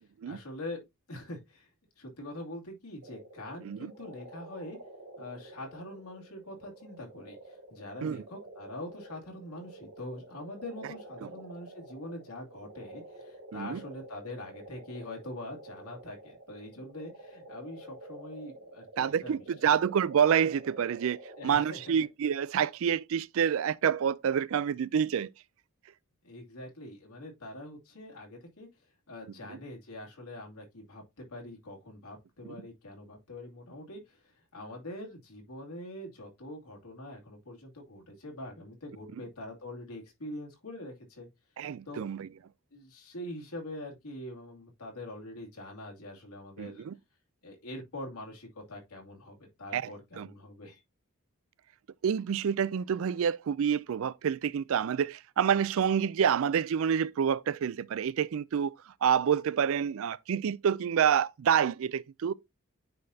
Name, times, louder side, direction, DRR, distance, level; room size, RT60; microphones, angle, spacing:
voice 1, 0.2-1.7 2.0-4.8 5.2-19.3 19.6-19.7 21.4-22.0 26.2-28.7 29.1-41.3 41.9-42.0 42.7-46.9 47.4-50.8, left 1 dB, 85° left, 2.7 m, -44 dB
sound 1, 3.0-22.1, right 1 dB, 80° right, 1.8 m, -49 dB
voice 2, 19.0-21.2 21.4-25.3 29.5-29.6 32.4-32.6 41.6-42.3 46.6-46.9 49.7-49.9 50.2-50.3 52.0-62.3, right 8 dB, 60° right, 0.3 m, -28 dB
9.5 x 4.2 x 2.7 m
head